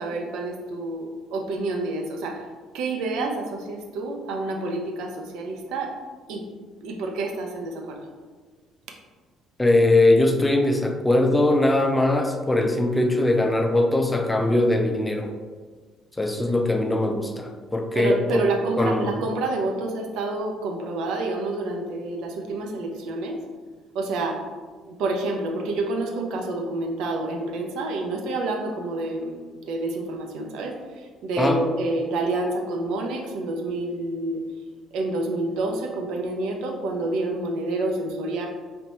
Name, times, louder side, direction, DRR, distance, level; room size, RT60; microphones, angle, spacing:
voice 1, 0.0-2.4 2.7-5.9 6.3-6.4 6.8-8.0 17.9-23.4 23.9-24.4 24.9-34.4 34.9-38.5, right 2 dB, 60° right, 2 dB, 0.5 m, -28 dB
voice 2, 9.6-15.3 16.2-18.4 18.8-19.1 31.4-31.6, left 2 dB, 15° left, 4 dB, 0.5 m, -21 dB
3.3 x 2.9 x 2.9 m, 1.4 s
figure-of-eight pair, 50°, 0 cm